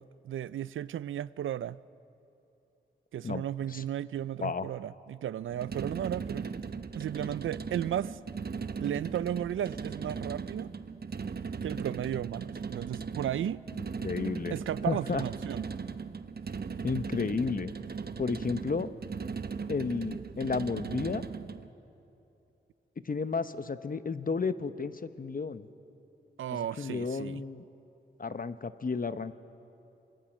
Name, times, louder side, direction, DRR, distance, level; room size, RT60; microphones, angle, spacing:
voice 1, 0.0-1.8 3.1-6.5 6.9-8.2 8.8-10.7 11.6-13.6 14.5-15.7 26.4-27.4, right 10 dB, 80° right, 0.4 m, -34 dB
sound 1, 5.5-21.7, right 5 dB, 50° right, 0.9 m, -38 dB
voice 2, 14.0-14.6 14.8-15.2 16.8-17.7 18.2-18.9 19.7-21.2 23.0-25.7 26.5-27.6 28.2-29.3, left 4 dB, 45° left, 0.9 m, -32 dB
27.0 x 21.0 x 6.2 m
cardioid pair, 50°, 20 cm